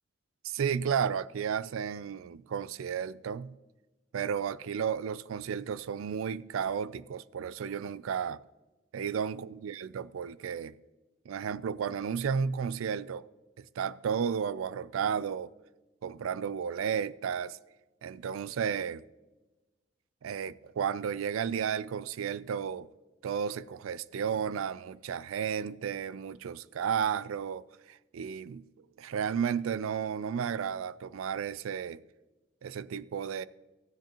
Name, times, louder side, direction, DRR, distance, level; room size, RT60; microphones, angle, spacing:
voice 1, 0.4-3.5 4.1-8.4 8.9-10.8 11.3-13.2 13.6-15.5 16.0-17.6 18.0-19.0 20.2-22.9 23.2-28.6 29.0-32.0 32.6-33.4, right 7 dB, 85° right, 0.4 m, -33 dB
15.5 x 10.5 x 3.0 m
head